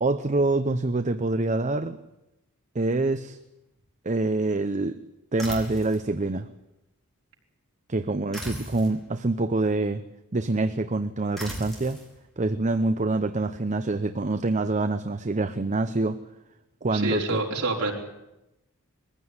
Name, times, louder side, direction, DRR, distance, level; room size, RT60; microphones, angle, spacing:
voice 1, 0.0-2.0 2.7-3.4 4.0-5.0 5.3-6.5 7.9-10.0 10.3-12.0 12.4-16.2 16.8-17.4, right 2 dB, 35° right, 11 dB, 0.7 m, -26 dB
sound 1, 5.4-6.0 8.3-9.0 11.4-12.1, equal, ahead, 5.2 m, -37 dB
voice 2, 16.9-17.9, right 2 dB, 80° right, -1 dB, 4.6 m, -27 dB
21.5 x 15.5 x 9.7 m, 0.94 s
head